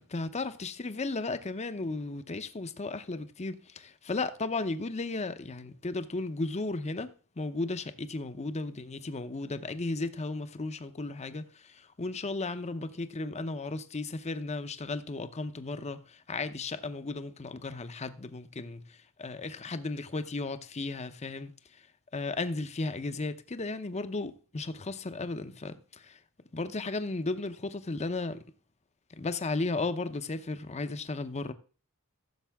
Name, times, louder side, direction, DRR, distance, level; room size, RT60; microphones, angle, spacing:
voice 1, 0.0-7.1 7.4-18.8 19.2-21.5 22.1-26.2 26.5-28.4 29.1-31.5, left 3 dB, 30° left, 0.7 m, -35 dB
14.5 x 6.8 x 3.5 m
head